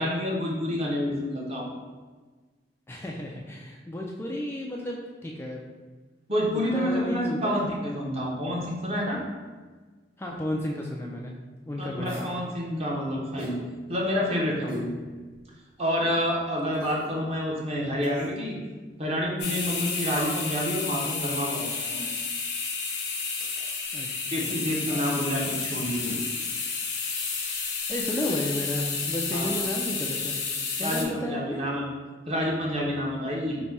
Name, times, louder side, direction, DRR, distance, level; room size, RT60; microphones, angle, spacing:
voice 1, 0.0-1.7 6.3-9.2 11.8-13.6 13.9-14.9 15.8-18.5 19.0-22.0 24.3-26.1 29.3-29.5 30.8-31.8 32.3-33.6, equal, 35° right, -3 dB, 0.8 m, -28 dB
voice 2, 2.9-5.6 6.7-7.6 10.2-11.3 11.6-12.3 23.9-24.6 27.9-30.4 30.8-31.6, left 1 dB, 15° left, -2 dB, 0.3 m, -32 dB
sound 1, 12.0-12.4 13.4-13.6 14.7-14.9 15.4-15.5 16.7-17.1 18.0-18.4 20.0-20.6 21.7-22.1 23.4-23.7 24.8-25.1 26.0-26.2 26.5-26.6, equal, 55° right, 1.4 m, -40 dB
sound 2, 19.4-31.0, left 5 dB, 65° left, 0.7 m, -31 dB
4.0 x 2.2 x 4.6 m, 1.4 s
head